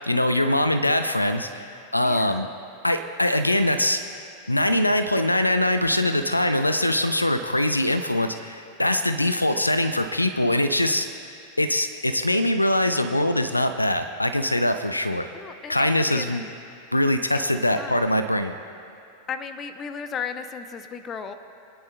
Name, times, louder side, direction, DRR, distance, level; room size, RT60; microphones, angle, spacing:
voice 1, 0.0-1.5 1.9-2.5 2.8-4.0 4.5-11.1 11.6-15.2 15.7-16.4 16.9-18.5, left 1 dB, 85° left, 9 dB, 0.5 m, -22 dB
voice 2, 2.0-2.4 15.3-16.5 17.8-18.0 19.3-21.3, left 6 dB, 25° left, 10 dB, 0.6 m, -35 dB
25.0 x 10.0 x 2.2 m, 2.6 s
figure-of-eight pair, 90°, 0 cm